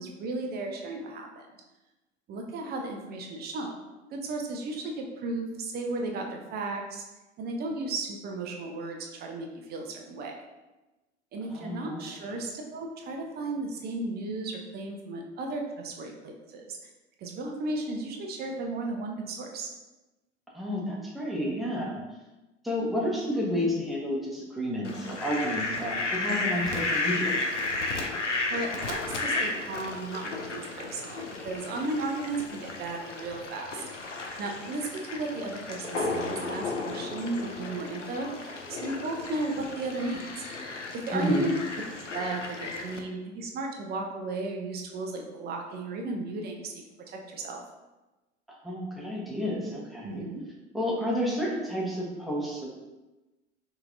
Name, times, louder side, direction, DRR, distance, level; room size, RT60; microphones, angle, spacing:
voice 1, 0.0-1.5 2.3-3.8 4.1-7.0 7.4-10.3 11.3-16.8 17.2-19.7 28.2-33.8 34.4-40.4 40.9-41.5 42.1-46.6 47.1-47.6 50.0-50.4, right 2 dB, 25° right, 1 dB, 0.6 m, -35 dB
voice 2, 11.5-12.3 20.5-22.0 22.6-27.4 41.1-41.5 48.5-50.2 50.7-52.7, equal, ahead, -4 dB, 0.9 m, -31 dB
Fowl, 24.8-43.0, left 3 dB, 90° left, 0.5 m, -33 dB
5.3 x 2.7 x 2.6 m, 1.1 s
figure-of-eight pair, 80°, 35 cm